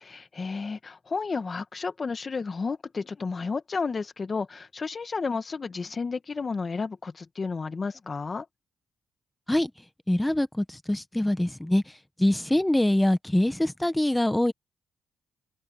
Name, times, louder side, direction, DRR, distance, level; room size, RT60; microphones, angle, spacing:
voice 1, 0.1-8.5, left 4 dB, 35° left, 2.0 m, -32 dB
voice 2, 10.1-11.8 12.2-14.5, left 1 dB, 10° left, 1.5 m, -24 dB
cardioid pair, 90°, 0 cm